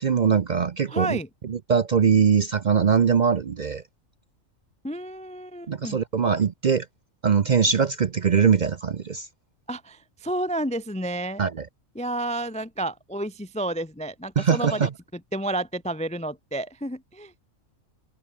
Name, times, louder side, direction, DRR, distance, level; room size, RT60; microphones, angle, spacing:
voice 1, 0.0-1.2 1.4-3.8 5.7-6.9 7.2-9.3 11.4-11.7 14.4-14.9, right 6 dB, 50° right, 0.6 m, -22 dB
voice 2, 0.9-1.3 4.8-6.0 9.7-11.4 11.9-17.3, right 1 dB, 10° left, 0.4 m, -31 dB
open air
omnidirectional pair, 1.4 m